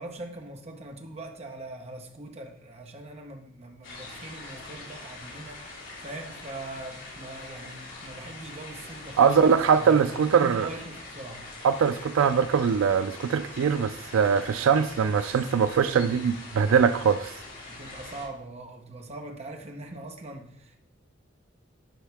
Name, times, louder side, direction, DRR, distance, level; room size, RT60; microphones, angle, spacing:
voice 1, 0.0-10.0 10.3-11.4 17.7-20.8, right 2 dB, 30° right, 0.9 m, -41 dB
sound 1, 3.8-18.2, left 2 dB, 70° left, 3.5 m, -43 dB
voice 2, 9.2-10.7 11.6-17.3, right 6 dB, 85° right, 0.4 m, -22 dB
10.5 x 5.5 x 3.4 m
head